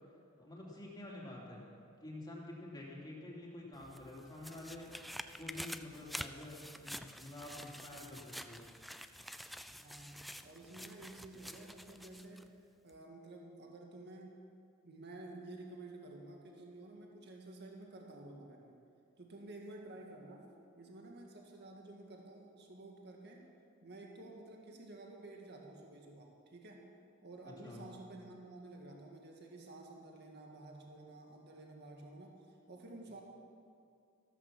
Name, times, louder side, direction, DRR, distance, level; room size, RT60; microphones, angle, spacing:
voice 1, 0.3-1.6 2.0-5.0 5.3-8.6 27.4-27.9, left 1 dB, 20° left, -4 dB, 2.9 m, -48 dB
sound 1, 3.7-12.5 12.9-13.0, equal, ahead, 0.4 m, -48 dB
voice 2, 9.8-12.5 12.8-14.4 14.8-18.8 19.2-20.4 20.8-23.5 23.8-26.9 27.2-33.2, right 2 dB, 50° right, 0 dB, 1.8 m, -52 dB
14.0 x 13.5 x 6.0 m, 2.4 s
head